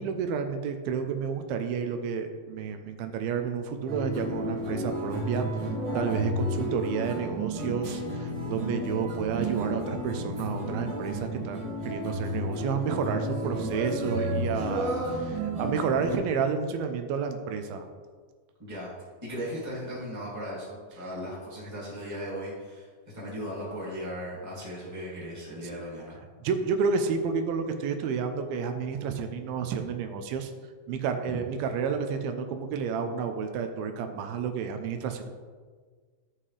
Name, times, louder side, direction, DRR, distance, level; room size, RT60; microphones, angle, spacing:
voice 1, 0.0-5.5 5.9-17.9 26.4-30.5 30.9-35.3, right 6 dB, 85° right, 6 dB, 2.6 m, -30 dB
sound 1, 3.9-16.2, equal, 45° right, 2.4 m, -32 dB
voice 2, 19.2-22.9 23.1-26.2 31.3-31.4, equal, 5° right, -7 dB, 1.8 m, -37 dB
12.5 x 5.6 x 3.3 m, 1.5 s
omnidirectional pair, 4.2 m